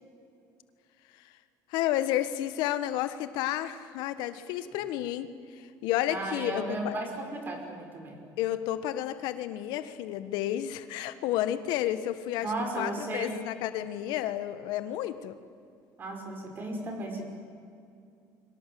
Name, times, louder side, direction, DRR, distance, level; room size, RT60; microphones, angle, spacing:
voice 1, 1.7-5.3 5.6-6.9 8.4-15.4, left 12 dB, 80° left, 12 dB, 1.4 m, -31 dB
voice 2, 6.1-8.2 12.4-13.3 16.0-17.2, right 2 dB, 30° right, 3 dB, 5.2 m, -35 dB
30.0 x 23.5 x 7.8 m, 2.5 s
cardioid pair, 165°, 7 cm